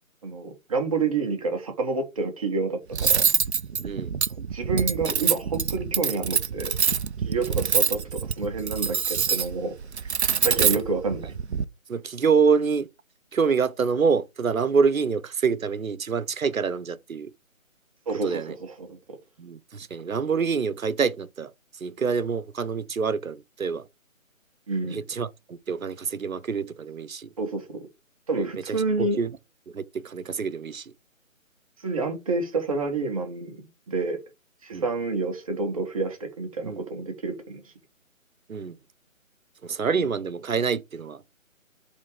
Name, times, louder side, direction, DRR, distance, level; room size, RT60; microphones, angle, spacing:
voice 1, 0.2-3.3 4.4-6.7 7.2-10.1 10.4-11.4 18.1-19.0 24.7-25.0 27.4-27.9 28.3-29.2 31.8-33.6 33.9-34.2 34.6-37.7 40.0-40.1, right 3 dB, 25° right, 1.2 m, -29 dB
Cutlery silverware, 2.9-11.6, right 7 dB, 55° right, 0.6 m, -25 dB
voice 2, 3.8-4.1 10.6-10.8 11.9-12.9 13.3-17.3 18.2-18.5 19.4-23.9 24.9-27.3 28.4-29.3 29.7-30.9 34.7-34.9 36.6-36.8 38.5-38.8 39.6-41.2, right 5 dB, 80° right, 1.0 m, -26 dB
7.5 x 3.7 x 4.9 m
figure-of-eight pair, 160°, 40 cm